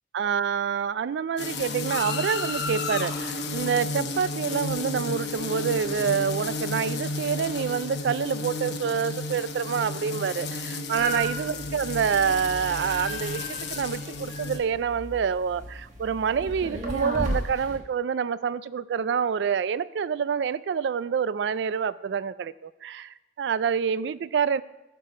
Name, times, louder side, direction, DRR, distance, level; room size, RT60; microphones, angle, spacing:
voice 1, 0.1-24.6, right 7 dB, 75° right, 18 dB, 0.3 m, -27 dB
sound 1, 1.4-14.6, left 3 dB, 70° left, 1.0 m, -32 dB
sound 2, 11.0-17.8, right 1 dB, 40° right, 1.3 m, -35 dB
13.0 x 4.8 x 5.0 m, 1.0 s
head